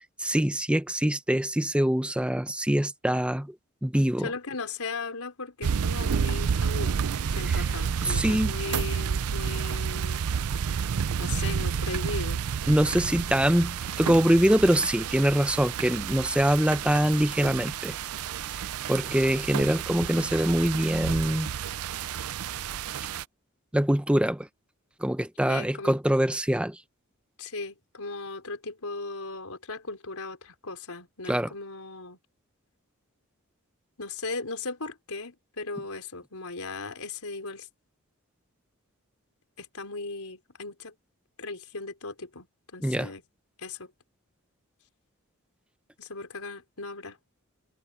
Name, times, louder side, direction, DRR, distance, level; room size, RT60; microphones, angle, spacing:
voice 1, 0.2-3.5 3.8-4.3 7.5-7.7 8.0-8.5 12.7-17.9 18.9-21.5 23.7-24.5 25.0-26.8 31.3-31.5 42.8-43.1, right 1 dB, 5° right, 0.6 m, -24 dB
voice 2, 4.2-7.0 7.3-10.2 11.2-12.4 25.5-26.0 27.4-32.2 34.0-37.7 39.6-40.9 41.4-42.5 42.7-43.2 43.6-43.9 46.0-47.2, left 3 dB, 85° left, 4.1 m, -37 dB
sound 1, 5.6-23.2, right 7 dB, 85° right, 0.5 m, -30 dB
head